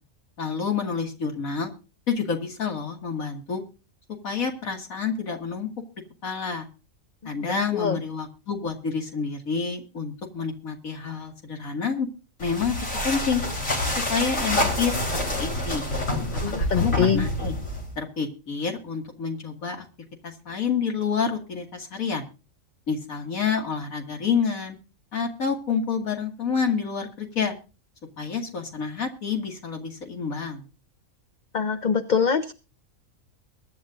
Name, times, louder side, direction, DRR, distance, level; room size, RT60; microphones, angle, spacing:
voice 1, 0.4-1.7 2.1-3.6 4.2-5.7 6.2-6.7 7.2-12.1 12.4-12.8 13.0-13.4 14.1-14.9 15.3-15.8 16.6-17.5 18.0-19.9 20.2-22.2 22.9-24.8 25.1-27.5 28.2-30.6, left 6 dB, 85° left, 3 dB, 2.6 m, -28 dB
voice 2, 7.2-8.0 16.4-17.3 31.5-32.5, left 6 dB, 45° left, 8 dB, 0.7 m, -24 dB
sound 1, 12.4-18.0, left 1 dB, 70° left, 4.1 m, -27 dB
23.5 x 10.0 x 2.6 m, 0.32 s
omnidirectional pair, 1.4 m